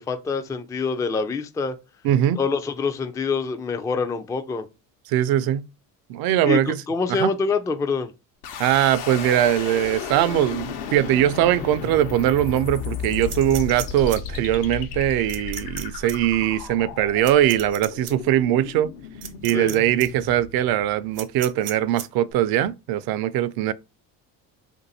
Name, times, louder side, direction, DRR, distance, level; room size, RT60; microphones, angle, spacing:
voice 1, 0.0-1.7 2.4-4.7 6.4-6.6 6.9-8.1 19.5-19.8, left 4 dB, 10° left, 0.3 m, -25 dB
voice 2, 2.0-2.4 5.1-5.7 6.1-6.8 7.1-7.3 8.6-18.9 19.4-23.7, right 12 dB, 60° right, 0.5 m, -21 dB
sound 1, 8.4-21.4, left 7 dB, 70° left, 0.9 m, -34 dB
sound 2, 13.3-14.2 15.3-15.8 16.1-16.2 17.2-18.1 19.2-19.7 20.0-20.1 21.2-22.1, right 10 dB, 75° right, 0.9 m, -34 dB
2.6 x 2.5 x 4.0 m
supercardioid pair, 80°, 42 cm